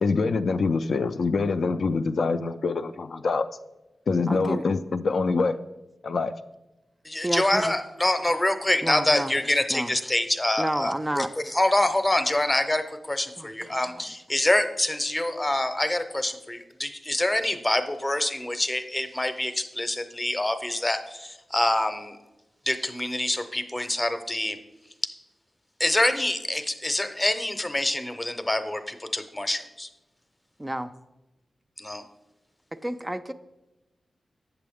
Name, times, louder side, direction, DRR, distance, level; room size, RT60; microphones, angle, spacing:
voice 1, 0.0-3.5 4.1-5.6 6.0-6.3, left 4 dB, 70° left, 9 dB, 0.3 m, -25 dB
voice 2, 4.3-4.7 7.2-7.8 8.8-9.3 9.7-9.9 10.6-11.3 13.4-14.0 30.6-30.9 32.7-33.3, right 1 dB, 15° right, 9 dB, 0.3 m, -30 dB
voice 3, 7.0-22.2 22.7-24.6 25.8-29.9 31.8-32.0, left 1 dB, 20° left, 9 dB, 0.6 m, -26 dB
8.3 x 6.8 x 3.5 m, 1.0 s
cardioid pair, 70°, 0 cm